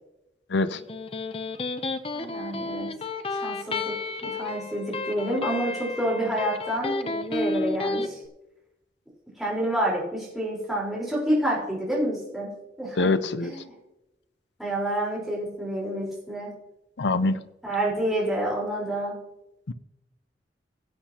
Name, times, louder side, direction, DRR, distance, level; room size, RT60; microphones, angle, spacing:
voice 1, 0.5-0.8 13.0-13.5 17.0-17.4 19.7-19.8, left 3 dB, 80° left, 12 dB, 0.7 m, -24 dB
Electric guitar, 0.7-8.1, left 2 dB, 35° left, 0.6 m, -31 dB
voice 2, 2.1-2.9 3.3-8.2 9.4-13.6 14.6-16.6 17.6-19.3, right 1 dB, ahead, -6 dB, 4.2 m, -29 dB
17.0 x 8.3 x 2.9 m, 0.91 s
head